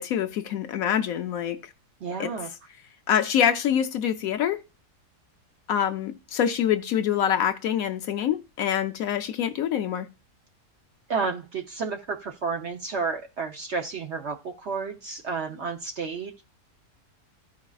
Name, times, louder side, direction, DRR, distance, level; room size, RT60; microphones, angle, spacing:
voice 1, 0.0-1.6 2.2-2.3 3.1-4.6 5.7-10.1, left 9 dB, 70° left, 0.9 m, -25 dB
voice 2, 2.0-2.5 11.1-16.4, right 5 dB, 60° right, 0.8 m, -31 dB
13.5 x 4.8 x 2.3 m
omnidirectional pair, 1.7 m